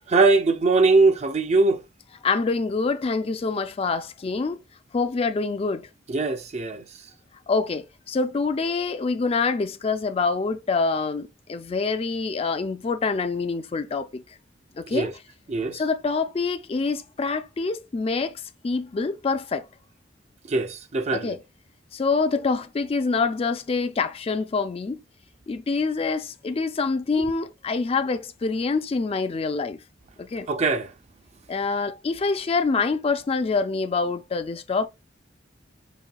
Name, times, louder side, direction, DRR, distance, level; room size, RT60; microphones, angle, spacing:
voice 1, 0.1-1.8 6.1-6.8 14.9-15.1 15.5-15.8 20.5-21.3 27.2-27.3 30.5-30.9, right 3 dB, 35° right, 0.4 m, -21 dB
voice 2, 2.2-4.6 4.9-5.9 7.5-14.2 14.8-15.1 15.7-19.7 21.1-21.4 21.9-25.0 25.5-29.8 30.2-30.5 31.5-34.9, left 4 dB, 30° left, 0.3 m, -26 dB
5.3 x 2.7 x 2.2 m
head